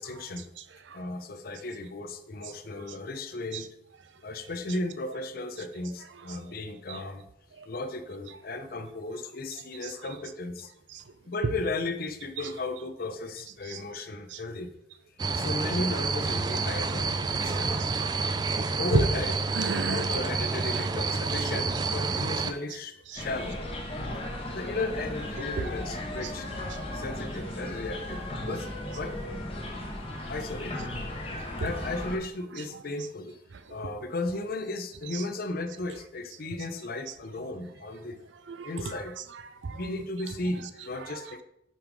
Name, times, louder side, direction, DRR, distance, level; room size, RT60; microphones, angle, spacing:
voice 1, 0.0-0.5 0.9-3.8 4.2-7.2 7.6-10.7 11.3-14.8 15.3-17.7 18.8-19.4 19.7-23.6 24.5-26.5 26.9-28.7 29.0-29.2 29.9-30.0 30.3-30.9 31.6-33.4 33.7-38.2 38.6-39.2 39.7-41.4, left 2 dB, 50° left, 8 dB, 0.6 m, -35 dB
voice 2, 0.6-1.0 3.5-3.7 4.7-4.8 6.3-6.4 6.9-7.0 9.8-9.9 10.9-11.0 11.4-11.5 12.4-12.5 13.6-13.8 14.3-14.4 17.3-18.2 18.9-19.1 19.5-20.1 20.7-20.9 21.2-21.8 23.1-23.2 25.6-25.7 26.2-26.3 26.7-26.8 31.6-31.7 32.5-32.8 33.7-33.8 35.1-35.3 37.1-37.2 38.5-41.4, right 3 dB, 75° right, 11 dB, 0.5 m, -34 dB
sound 1, 15.2-22.5, right 4 dB, 20° right, 0.3 m, -29 dB
sound 2, 23.2-32.2, left 1 dB, 30° left, 1.1 m, -36 dB
5.5 x 5.1 x 4.6 m, 0.77 s
head